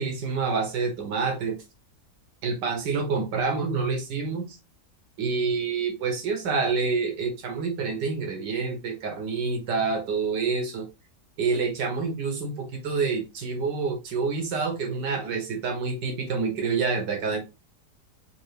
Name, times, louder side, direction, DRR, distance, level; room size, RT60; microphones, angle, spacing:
voice 1, 0.0-1.6 2.4-4.6 5.2-10.9 11.4-17.4, right 4 dB, 85° right, 4 dB, 1.7 m, -27 dB
4.5 x 2.7 x 3.2 m, 0.26 s
omnidirectional pair, 1.8 m